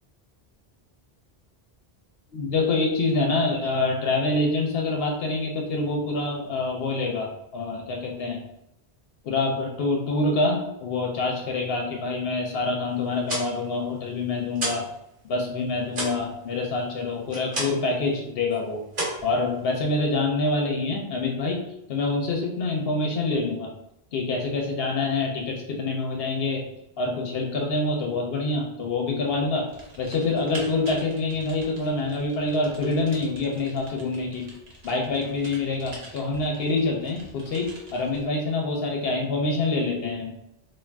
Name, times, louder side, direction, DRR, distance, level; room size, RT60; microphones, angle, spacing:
voice 1, 2.3-8.4 9.2-14.9 15.3-18.8 19.2-23.7 24.1-26.6 27.0-34.6 34.8-40.3, left 3 dB, 70° left, 0 dB, 0.8 m, -26 dB
sound 1, 13.0-14.9 15.2-18.0 18.3-18.6 18.9-20.0, right 1 dB, 45° right, 1.2 m, -32 dB
Typing, 29.7-38.3, right 1 dB, 80° right, 1.1 m, -45 dB
2.4 x 2.4 x 3.3 m, 0.84 s
omnidirectional pair, 1.0 m